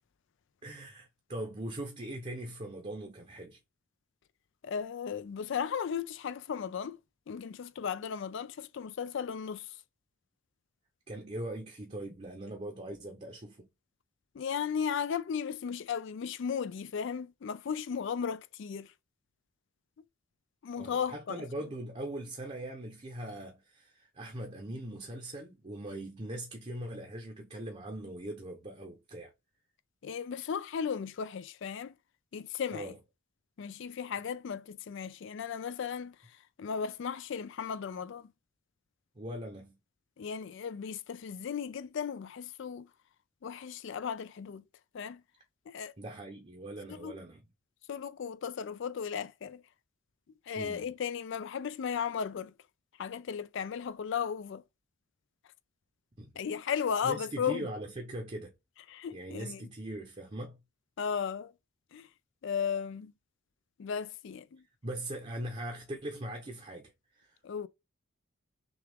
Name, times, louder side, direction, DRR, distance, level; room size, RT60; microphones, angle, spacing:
voice 1, 0.6-3.6 11.1-13.7 20.8-29.3 32.7-33.0 39.2-39.8 46.0-47.5 50.6-50.9 56.2-56.4 57.0-58.5 59.1-60.6 64.8-67.4, right 1 dB, 30° right, 0.7 m, -41 dB
voice 2, 4.6-7.0 7.3-9.7 14.3-18.9 20.6-21.4 30.0-31.9 32.3-32.9 33.6-36.2 36.6-38.3 40.2-42.9 43.4-44.6 44.9-45.2 45.7-45.9 46.9-47.1 47.9-49.6 50.5-52.5 53.0-54.6 56.4-57.7 58.9-59.6 61.0-61.5 61.9-62.1 62.4-63.1 63.8-64.6 67.4-67.7, left 7 dB, 55° left, 0.3 m, -35 dB
6.1 x 2.4 x 3.4 m
head